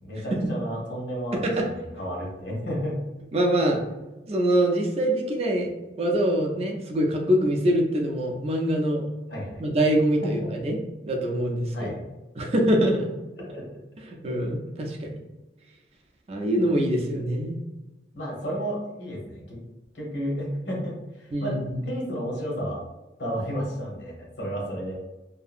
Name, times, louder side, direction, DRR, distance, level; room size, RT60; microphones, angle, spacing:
voice 1, 0.0-3.0 9.3-9.6 10.2-10.5 11.7-12.0 13.4-13.6 18.1-19.6 19.9-21.6 21.8-22.8 23.2-25.0, equal, 75° left, -3 dB, 0.9 m, -32 dB
voice 2, 1.3-1.7 3.3-3.8 4.3-5.7 6.0-9.0 9.6-10.8 11.1-11.9 12.4-13.1 14.2-15.2 16.3-17.6 21.3-21.8, right 1 dB, 35° right, 1 dB, 0.4 m, -24 dB
2.7 x 2.4 x 2.5 m, 1.1 s
head